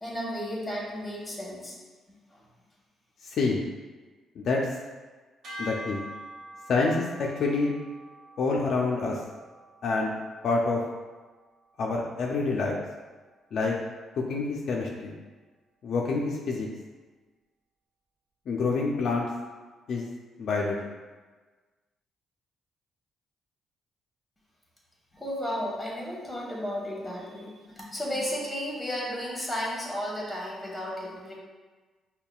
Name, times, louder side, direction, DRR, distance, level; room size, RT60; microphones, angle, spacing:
voice 1, 0.0-1.7 2.3-2.4 25.1-31.3, equal, 15° left, -4 dB, 1.1 m, -33 dB
voice 2, 3.2-3.6 4.4-4.6 5.6-6.1 6.7-7.7 8.4-9.2 9.8-10.1 10.4-10.8 11.8-12.8 13.5-13.7 14.2-15.1 15.8-16.7 18.5-19.3 19.9-20.1 20.4-20.9, left 3 dB, 65° left, -1 dB, 0.4 m, -27 dB
sound 1, 5.4-11.8, equal, 70° right, 0.7 m, -45 dB
5.3 x 2.2 x 2.3 m, 1.3 s
cardioid pair, 90°, 0 cm